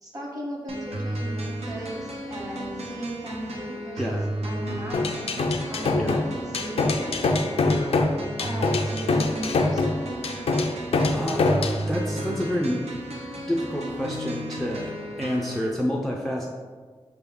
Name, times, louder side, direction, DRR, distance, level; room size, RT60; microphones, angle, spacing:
voice 1, 0.0-7.3 8.4-10.3, equal, 35° right, -2 dB, 1.1 m, -37 dB
sound 1, 0.7-15.7, right 1 dB, 85° right, 0.7 m, -34 dB
sound 2, 4.9-11.8, left 3 dB, 80° left, 0.4 m, -24 dB
voice 2, 11.1-12.8 13.5-16.5, equal, 5° left, -2 dB, 0.3 m, -28 dB
5.3 x 2.3 x 3.5 m, 1.5 s
wide cardioid pair, 95°, 10 cm